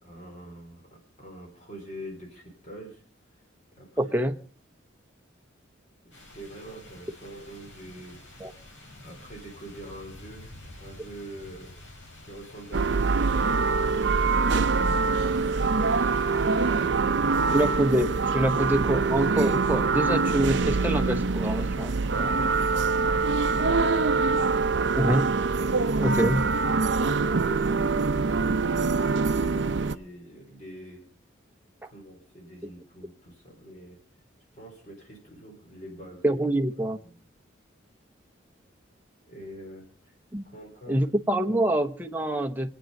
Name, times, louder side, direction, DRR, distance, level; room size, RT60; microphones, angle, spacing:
voice 1, 0.0-3.0 3.7-4.2 6.0-8.6 9.0-10.5 10.8-11.7 12.2-14.0 22.1-25.3 28.6-31.1 31.8-34.0 34.5-36.4 37.0-37.2 39.3-40.1 40.4-41.1 41.5-41.6, right 1 dB, 40° left, 3.8 m, -45 dB
voice 2, 4.0-4.3 8.4-8.5 17.5-22.2 25.0-25.3 26.0-26.4 36.2-37.0 40.3-40.4 40.9-42.7, right 1 dB, 10° right, 0.9 m, -25 dB
sound 1, 6.1-16.9, left 1 dB, 75° left, 5.4 m, -49 dB
sound 2, 12.7-30.0, right 4 dB, 60° right, 0.6 m, -24 dB
25.0 x 9.1 x 5.3 m
head